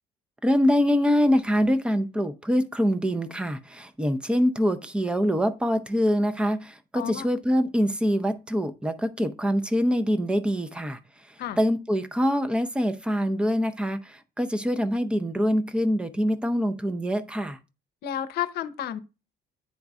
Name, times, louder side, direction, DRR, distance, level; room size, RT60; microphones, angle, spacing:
voice 1, 0.4-11.0 11.6-17.6, equal, 5° right, 0.6 m, -24 dB
voice 2, 6.9-7.3 11.4-11.6 18.0-19.0, left 10 dB, 70° left, 0.7 m, -31 dB
10.5 x 3.8 x 2.4 m
cardioid pair, 110°, 17 cm